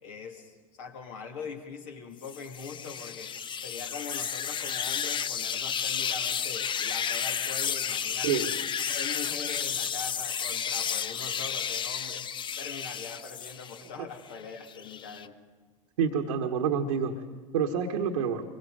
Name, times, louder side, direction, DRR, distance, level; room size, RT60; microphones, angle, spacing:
voice 1, 0.0-8.5 8.9-15.4, left 5 dB, 65° left, 3 dB, 2.8 m, -42 dB
sound 1, 2.2-13.9 14.3-15.3, left 8 dB, 25° left, 0.6 m, -32 dB
voice 2, 16.0-17.1 17.5-18.4, right 7 dB, 70° right, 1 dB, 1.4 m, -27 dB
24.5 x 22.0 x 5.1 m, 1.4 s
figure-of-eight pair, 80°, 18 cm